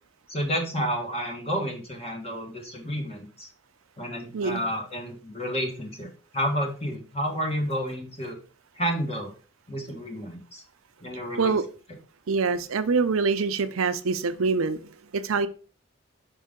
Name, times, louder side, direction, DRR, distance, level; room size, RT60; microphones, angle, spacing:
voice 1, 0.3-3.5 4.0-8.4 8.8-9.3 9.7-10.6 11.0-11.6, equal, 30° left, 1.6 m, -30 dB
voice 2, 4.3-4.7 11.4-11.6 12.3-15.5, right 4 dB, 85° right, 0.6 m, -25 dB
5.5 x 5.4 x 3.7 m
head